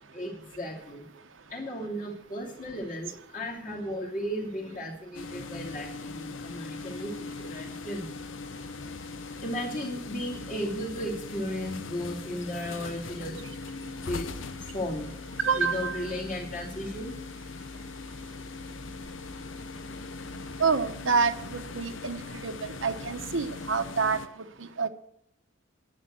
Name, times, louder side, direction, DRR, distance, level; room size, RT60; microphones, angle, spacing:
voice 1, 0.1-1.0 1.5-8.1 9.4-13.4 14.0-14.4 14.7-15.1 15.6-17.2, equal, 45° left, -2 dB, 2.9 m, -35 dB
sound 1, 5.1-24.3, left 3 dB, 85° left, 0.7 m, -40 dB
voice 2, 15.4-16.0 20.6-24.2 24.8-24.9, right 5 dB, 90° right, 9 dB, 1.0 m, -27 dB
11.0 x 8.2 x 7.6 m, 0.75 s
head